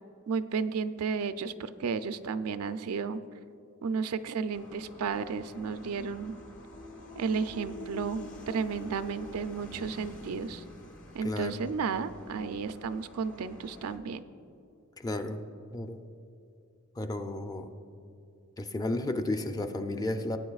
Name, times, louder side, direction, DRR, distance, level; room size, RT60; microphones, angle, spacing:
voice 1, 0.3-3.2 3.8-6.3 7.2-10.6 11.1-14.2, right 5 dB, 75° right, 11 dB, 0.4 m, -33 dB
sound 1, 4.5-14.0, left 1 dB, 65° left, 1.4 m, -47 dB
voice 2, 11.2-11.5 15.0-15.4 15.7-16.0 17.0-17.7 18.6-20.4, left 2 dB, 15° left, 7 dB, 0.4 m, -33 dB
17.5 x 8.8 x 2.4 m, 2.7 s
head